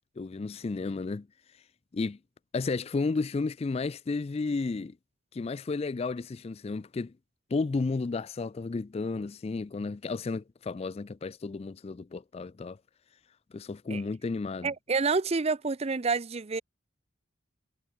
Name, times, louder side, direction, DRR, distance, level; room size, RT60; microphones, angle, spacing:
voice 1, 0.2-1.3 1.9-2.2 2.5-5.0 5.3-7.1 7.5-12.8 13.5-14.7, left 3 dB, 30° left, 0.3 m, -32 dB
voice 2, 14.6-16.6, right 4 dB, 30° right, 0.5 m, -28 dB
head